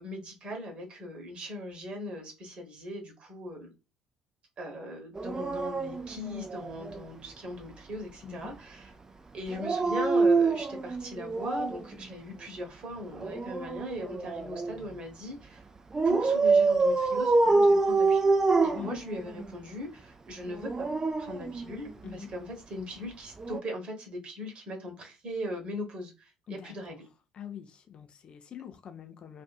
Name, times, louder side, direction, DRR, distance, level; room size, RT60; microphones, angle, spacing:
voice 1, 0.0-3.7 4.6-8.9 9.3-15.6 16.0-18.3 18.6-20.7 21.2-27.1, equal, 40° right, 1.1 m, -39 dB
Dog, 5.1-7.0 9.5-11.9 13.1-14.8 15.9-19.5 20.5-22.1 23.4-23.6, right 3 dB, 20° right, 0.4 m, -26 dB
voice 2, 26.5-27.0 27.3-29.4, left 9 dB, 40° left, 0.5 m, -44 dB
2.5 x 2.5 x 2.3 m
figure-of-eight pair, 55°, 3 cm